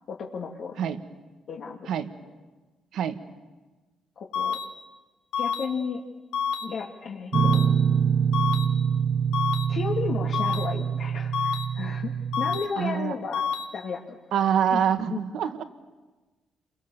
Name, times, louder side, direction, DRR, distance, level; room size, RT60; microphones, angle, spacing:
voice 1, 0.1-1.0 1.5-1.9 4.2-4.6 5.4-6.0 6.6-7.7 9.7-12.1 12.4-13.4 13.7-14.2 14.7-15.2, left 5 dB, 65° left, -2 dB, 2.4 m, -33 dB
sound 1, 4.3-4.6 5.3-5.6 6.3-6.6 7.3-7.6 8.3-8.6 9.3-9.6 10.3-10.6 11.3-11.6 12.3-12.6 13.3-13.6, left 7 dB, 85° left, 1.6 m, -27 dB
Guitar, 7.3-12.6, right 7 dB, 50° right, 1.1 m, -25 dB
voice 2, 12.8-13.1 14.3-15.6, right 8 dB, 75° right, 10 dB, 1.5 m, -25 dB
28.0 x 24.0 x 7.2 m, 1.2 s
cardioid pair, 90°, 0 cm